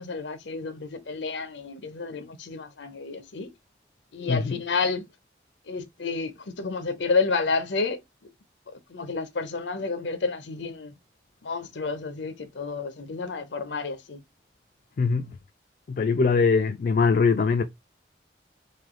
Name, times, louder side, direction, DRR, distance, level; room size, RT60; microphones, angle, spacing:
voice 1, 0.0-3.5 4.1-5.0 5.7-8.0 8.9-10.9 11.4-14.2, left 4 dB, 85° left, 0.7 m, -30 dB
voice 2, 4.3-4.6 15.0-15.3 15.9-17.6, left 4 dB, 50° left, 0.3 m, -22 dB
3.3 x 2.7 x 3.7 m
head